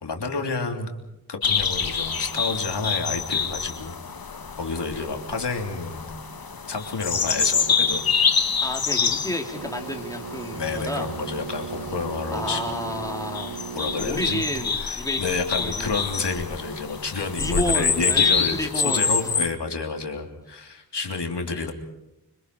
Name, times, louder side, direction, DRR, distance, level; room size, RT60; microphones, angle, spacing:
voice 1, 0.0-1.0 1.3-4.0 4.6-6.1 6.7-8.3 10.5-13.0 13.7-14.4 14.8-21.7, left 4 dB, 90° left, 3 dB, 3.2 m, -30 dB
sound 1, 1.4-19.5, left 5 dB, 60° left, 1.5 m, -27 dB
voice 2, 8.6-11.1 12.3-13.6 14.0-15.2 15.5-16.1 17.4-19.1 21.4-21.7, left 1 dB, 10° left, 2 dB, 3.4 m, -31 dB
sound 2, 9.5-14.7, right 9 dB, 75° right, 0.9 m, -37 dB
26.0 x 25.5 x 4.8 m, 0.93 s
wide cardioid pair, 85°, 40 cm